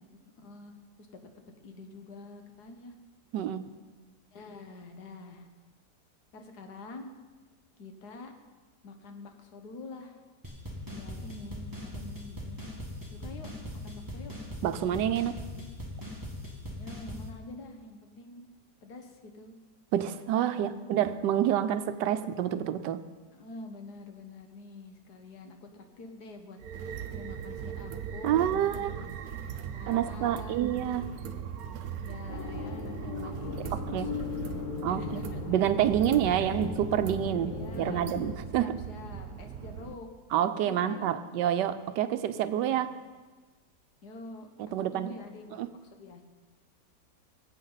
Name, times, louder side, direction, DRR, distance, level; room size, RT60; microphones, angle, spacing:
voice 1, 0.1-1.1 1.6-2.9 4.3-5.5 6.3-7.1 7.8-8.3 8.8-10.2 10.9-12.6 13.1-14.3 16.8-18.5 18.8-19.5 20.5-20.7 22.1-22.3 23.3-31.3 32.0-35.4 36.2-36.6 37.4-38.1 38.5-40.1 40.6-41.2 42.5-42.9 44.0-44.5 44.8-46.2, left 3 dB, 70° left, 5 dB, 1.7 m, -47 dB
voice 2, 3.3-3.7 14.6-15.4 19.9-23.0 28.2-28.9 29.9-31.1 33.7-34.1 34.8-35.2 35.5-38.8 40.3-42.9 44.6-45.1 45.6-45.7, right 10 dB, 85° right, 11 dB, 1.3 m, -28 dB
sound 1, 10.4-17.3, left 1 dB, 15° right, 1.3 m, -40 dB
sound 2, 26.6-39.9, right 8 dB, 65° right, 1.1 m, -39 dB
sound 3, 32.3-38.3, left 5 dB, 35° left, 0.9 m, -37 dB
20.0 x 8.2 x 4.0 m, 1.3 s
omnidirectional pair, 1.8 m